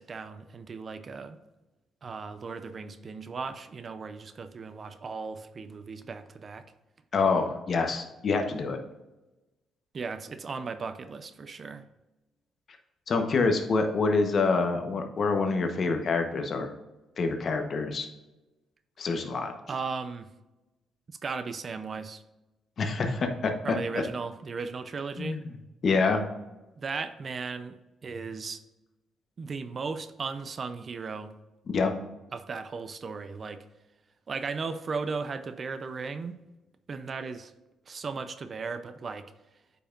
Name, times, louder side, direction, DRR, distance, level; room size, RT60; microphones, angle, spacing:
voice 1, 0.0-1.4 2.0-6.7 9.9-11.8 19.7-20.3 21.1-22.2 23.6-25.4 26.8-27.8 28.0-28.6 29.4-31.3 32.3-33.6 34.3-36.4 36.9-37.5 37.9-39.3, right 4 dB, 45° right, 11 dB, 0.5 m, -36 dB
voice 2, 7.1-8.8 13.1-16.7 17.2-18.1 19.0-19.5 22.8-23.8 25.2-25.4 25.8-26.2 31.7-31.9, left 4 dB, 50° left, 5 dB, 1.0 m, -26 dB
8.4 x 5.5 x 2.5 m, 1.0 s
cardioid pair, 90°, 0 cm